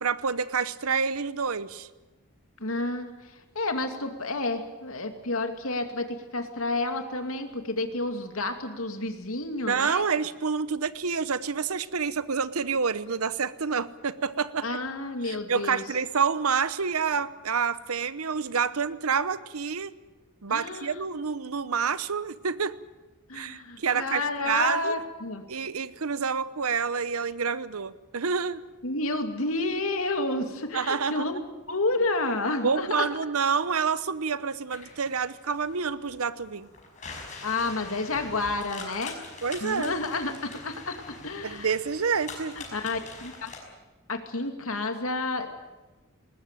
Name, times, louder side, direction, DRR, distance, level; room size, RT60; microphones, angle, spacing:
voice 1, 0.0-1.9 9.7-14.7 15.3-19.9 20.4-22.8 23.3-25.0 25.5-28.6 30.7-31.3 32.6-36.7 39.4-39.9 41.4-42.6, right 5 dB, 85° right, 15 dB, 0.9 m, -28 dB
voice 2, 2.6-3.1 3.5-10.0 14.6-15.8 20.5-21.2 23.3-25.4 28.8-31.4 31.7-33.0 37.4-39.2 39.6-41.7 42.6-43.5 44.1-45.5, left 2 dB, 75° left, 6 dB, 2.5 m, -30 dB
sound 1, 34.7-43.6, left 3 dB, 35° left, 5.6 m, -44 dB
20.0 x 20.0 x 9.1 m, 1.2 s
head